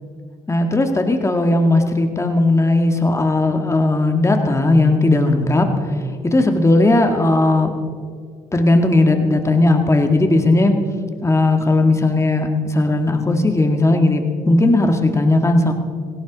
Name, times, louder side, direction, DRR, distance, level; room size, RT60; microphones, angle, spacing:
voice 1, 0.5-5.7 6.2-7.7 8.5-10.7 11.2-15.7, left 2 dB, 20° left, 5 dB, 1.8 m, -16 dB
17.0 x 17.0 x 4.1 m, 2.1 s
cardioid pair, 85°, 15 cm